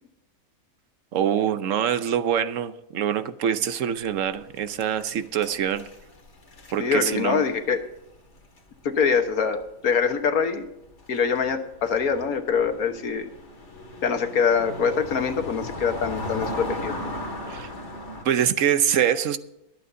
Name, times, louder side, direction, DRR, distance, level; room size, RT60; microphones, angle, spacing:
voice 1, 1.1-5.9 6.7-7.4 17.5-17.7 18.2-19.4, right 9 dB, 65° right, 1.1 m, -24 dB
sound 1, 4.0-9.6 9.9-10.1 10.8-18.2, left 1 dB, 50° left, 2.2 m, -37 dB
voice 2, 6.8-7.8 8.8-10.7 11.1-13.3 14.0-17.0, left 6 dB, 80° left, 1.6 m, -24 dB
23.5 x 8.5 x 2.7 m
omnidirectional pair, 1.5 m